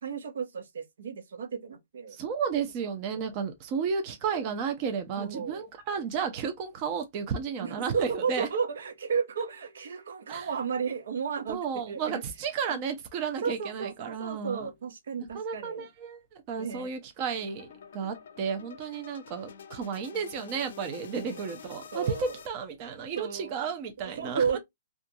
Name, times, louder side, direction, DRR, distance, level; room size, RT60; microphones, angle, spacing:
voice 1, 0.0-2.2 3.1-3.2 5.2-5.6 7.6-12.2 12.7-12.8 13.4-15.9 16.6-16.9 21.2-21.6 21.9-22.4 23.2-23.7 24.0-24.6, right 6 dB, 75° right, 0.6 m, -33 dB
voice 2, 2.1-8.5 10.3-10.5 11.5-14.7 15.3-16.2 16.5-17.7 17.9-24.4, right 6 dB, 35° right, 0.6 m, -33 dB
sound 1, 17.4-22.5, left 7 dB, 65° left, 0.5 m, -48 dB
2.5 x 2.4 x 2.6 m
hypercardioid pair, 155°, 0 cm